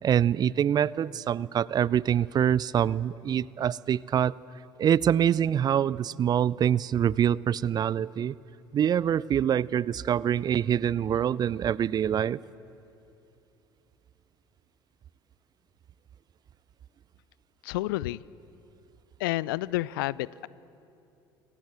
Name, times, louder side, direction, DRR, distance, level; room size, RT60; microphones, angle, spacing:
voice 1, 0.0-4.3 4.8-8.3 8.7-12.4, right 9 dB, 35° right, 23 dB, 0.5 m, -25 dB
voice 2, 17.6-18.2 19.2-20.5, left 17 dB, 65° left, 22 dB, 0.5 m, -30 dB
27.0 x 24.0 x 7.7 m, 2.8 s
figure-of-eight pair, 60°, 12 cm